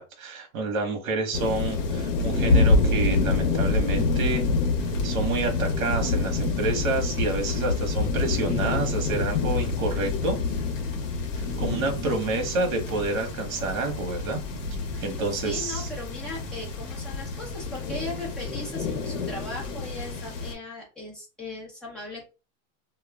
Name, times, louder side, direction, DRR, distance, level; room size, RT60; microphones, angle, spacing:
voice 1, 0.0-4.4 5.0-10.4 11.4-14.4 15.0-15.9, right 3 dB, 80° right, 3 dB, 0.9 m, -29 dB
sound 1, 1.3-20.5, left 3 dB, 65° left, 0.8 m, -27 dB
voice 2, 15.4-22.3, left 2 dB, ahead, -5 dB, 0.7 m, -38 dB
2.3 x 2.1 x 3.3 m, 0.31 s
supercardioid pair, 155°, 41 cm